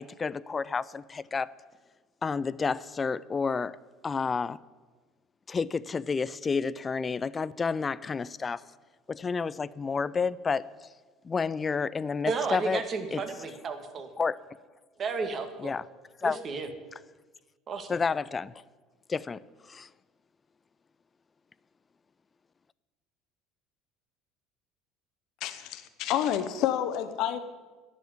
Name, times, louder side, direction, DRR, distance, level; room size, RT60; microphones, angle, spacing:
voice 1, 0.0-1.5 2.2-3.8 4.0-4.6 5.5-8.6 9.1-10.7 11.2-12.8 13.1-13.2 14.2-14.4 15.6-15.8 16.2-16.4 17.9-18.5 19.1-19.4 19.7-19.9, left 5 dB, 30° left, 0.4 m, -30 dB
voice 2, 12.3-14.1 15.0-15.7 16.2-16.7 17.7-17.9, right 4 dB, 40° right, 2.0 m, -33 dB
voice 3, 25.4-27.4, left 11 dB, 60° left, 1.1 m, -29 dB
10.5 x 8.3 x 9.3 m
hypercardioid pair, 65°, 0 cm